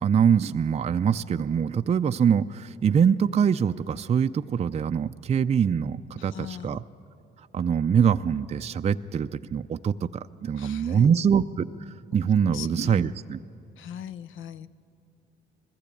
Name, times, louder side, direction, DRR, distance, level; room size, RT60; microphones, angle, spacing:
voice 1, 0.0-6.8 7.5-13.4, right 7 dB, 35° right, 9 dB, 0.4 m, -24 dB
voice 2, 6.2-6.8 10.6-11.3 12.5-13.1 13.8-14.7, left 9 dB, 80° left, 16 dB, 0.6 m, -39 dB
21.0 x 15.0 x 8.4 m, 2.7 s
cardioid pair, 90°, 20 cm